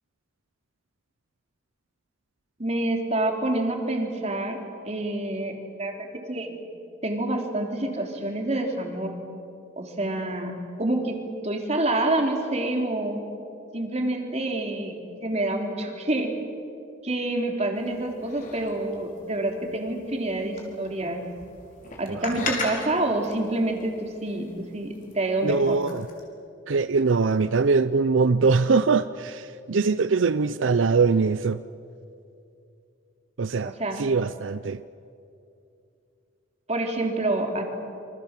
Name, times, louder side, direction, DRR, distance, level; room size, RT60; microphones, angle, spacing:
voice 1, 2.6-4.6 4.9-5.5 5.8-6.6 7.0-9.1 9.8-10.5 10.8-11.2 11.4-13.2 13.7-16.3 17.0-21.2 22.0-25.8 33.6-34.0 36.7-37.6, right 2 dB, 35° right, 2 dB, 3.5 m, -27 dB
sound 1, 17.7-26.2, left 3 dB, 45° left, 5.0 m, -39 dB
voice 2, 25.4-26.1 26.7-31.6 33.4-34.8, right 4 dB, 80° right, 14 dB, 0.6 m, -22 dB
28.0 x 26.0 x 7.5 m, 2.6 s
head